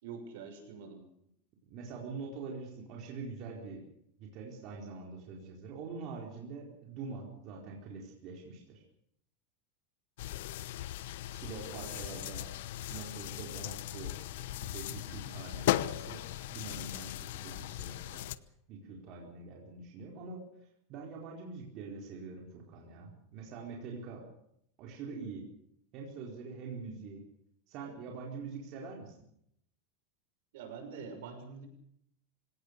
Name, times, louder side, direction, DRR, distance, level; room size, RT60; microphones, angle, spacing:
voice 1, 0.0-1.0 11.7-12.4 30.5-31.7, right 5 dB, 70° right, 6 dB, 6.4 m, -46 dB
voice 2, 1.7-3.9 4.2-8.8 11.3-12.5 12.9-18.2 18.7-20.4 20.9-24.2 24.8-25.4 25.9-27.2 27.7-29.1, right 4 dB, 40° right, -1 dB, 4.5 m, -44 dB
sound 1, 10.2-18.4, left 14 dB, 70° left, 0.9 m, -37 dB
24.5 x 18.0 x 6.8 m, 0.73 s
supercardioid pair, 165°, 0 cm